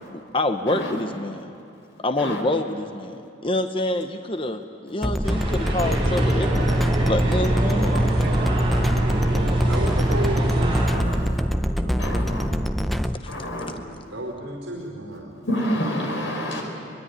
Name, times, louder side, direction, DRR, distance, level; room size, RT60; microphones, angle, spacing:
voice 1, 0.1-1.5 2.0-6.8 7.1-8.1 13.2-13.3 13.7-13.8, left 1 dB, 25° left, 7 dB, 0.9 m, -27 dB
sound 1, 5.0-13.2, equal, ahead, 0.6 m, -25 dB
sound 2, 5.2-10.9, right 1 dB, 25° right, 4.7 m, -23 dB
voice 2, 7.9-9.8 11.8-12.7, right 1 dB, 55° right, 2 dB, 2.2 m, -40 dB
voice 3, 9.7-11.4 14.1-15.3, right 1 dB, 70° right, -1 dB, 4.8 m, -32 dB
voice 4, 10.9-11.4 12.0-12.5 13.3-13.7 15.4-16.6, equal, 70° left, 1 dB, 5.4 m, -28 dB
23.0 x 21.5 x 9.9 m, 2.7 s
head